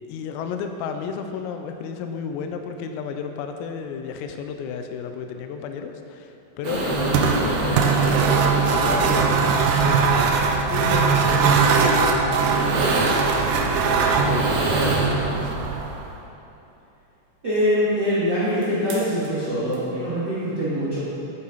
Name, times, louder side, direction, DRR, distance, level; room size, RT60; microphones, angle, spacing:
voice 1, 0.1-10.3 10.7-13.9 14.2-15.5, left 6 dB, 85° left, 6 dB, 3.3 m, -33 dB
sound 1, 6.6-15.7 18.6-18.7 18.9-19.3 19.7-19.8, right 1 dB, 65° right, 2.8 m, -28 dB
sound 2, 6.8-16.2, right 5 dB, 85° right, 3.3 m, -21 dB
voice 2, 17.4-21.0, equal, 45° right, -12 dB, 1.3 m, -23 dB
12.0 x 8.7 x 4.0 m, 2.9 s
omnidirectional pair, 5.9 m